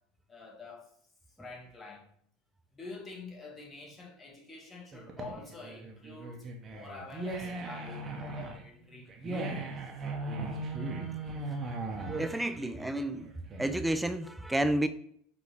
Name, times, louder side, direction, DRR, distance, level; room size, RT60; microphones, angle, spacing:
voice 1, 0.3-0.9 1.4-2.1 2.7-9.6, left 3 dB, 20° left, 1.4 m, -47 dB
sound 1, 4.9-14.0, right 2 dB, 30° right, 0.9 m, -38 dB
voice 2, 12.0-13.3 13.6-14.9, right 1 dB, 5° right, 0.4 m, -31 dB
4.7 x 2.7 x 3.4 m
hypercardioid pair, 85°, 0 cm